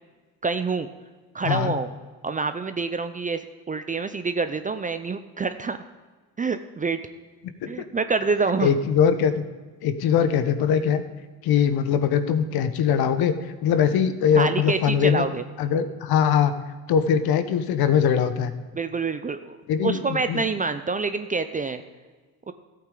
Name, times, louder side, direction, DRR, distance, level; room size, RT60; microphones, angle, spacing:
voice 1, 0.4-0.9 1.3-1.9 2.2-5.8 6.4-7.0 7.7-8.7 14.4-15.4 18.7-19.6 19.8-21.8 22.5-22.6, right 4 dB, 20° right, 10 dB, 0.5 m, -26 dB
voice 2, 1.4-1.8 7.6-7.7 8.6-9.4 9.8-11.0 11.4-15.2 15.6-16.5 16.9-18.5 19.7-20.4, left 8 dB, 55° left, 11 dB, 1.0 m, -21 dB
14.0 x 8.7 x 3.8 m, 1.4 s
supercardioid pair, 80°, 44 cm